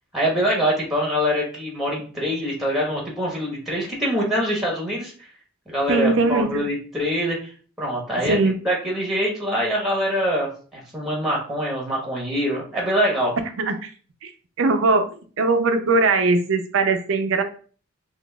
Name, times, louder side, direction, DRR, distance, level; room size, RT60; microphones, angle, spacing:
voice 1, 0.1-5.1 5.7-7.5 7.8-8.4 8.6-13.3, equal, ahead, -2 dB, 1.1 m, -24 dB
voice 2, 5.9-6.6 8.2-8.5 13.6-13.9 14.2-14.3 14.6-15.1 15.4-17.4, right 3 dB, 65° right, 7 dB, 0.6 m, -20 dB
5.9 x 2.4 x 2.3 m, 0.41 s
head